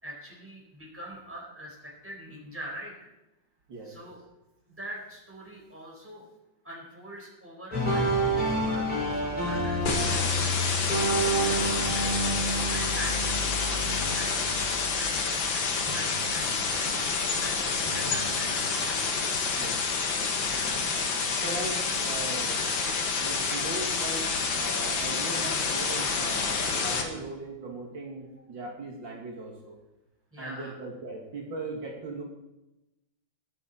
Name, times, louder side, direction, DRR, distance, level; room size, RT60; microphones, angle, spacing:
voice 1, 0.0-3.1 3.8-4.2 4.7-6.3 6.6-8.1 8.5-10.8 11.4-11.7 11.9-13.3 13.7-14.4 14.8-19.0 20.5-20.8 30.3-30.7, right 1 dB, 5° right, -3 dB, 4.2 m, -43 dB
voice 2, 3.7-4.1 19.6-19.8 21.3-22.6 23.1-29.8 30.4-32.2, right 2 dB, 70° right, -2 dB, 2.9 m, -39 dB
sound 1, 7.7-15.6 15.9-17.4 17.9-19.4, right 1 dB, 25° left, 5.7 m, -30 dB
sound 2, 9.9-27.0, left 4 dB, 80° left, 2.2 m, -28 dB
20.5 x 7.5 x 4.2 m, 0.96 s
omnidirectional pair, 2.1 m